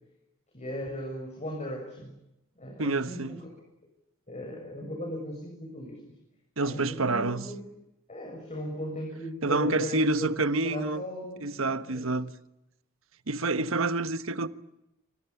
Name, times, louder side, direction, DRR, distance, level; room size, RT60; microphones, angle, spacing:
voice 1, 0.5-2.1 2.6-3.5 4.3-6.2 6.6-7.6 8.1-12.1 13.5-13.7, equal, 35° left, 7.2 m, -37 dB
voice 2, 2.8-3.4 6.6-7.5 9.4-11.0 11.4-12.3 13.3-14.5, right 2 dB, 75° right, 1.4 m, -28 dB
27.5 x 26.5 x 7.2 m
head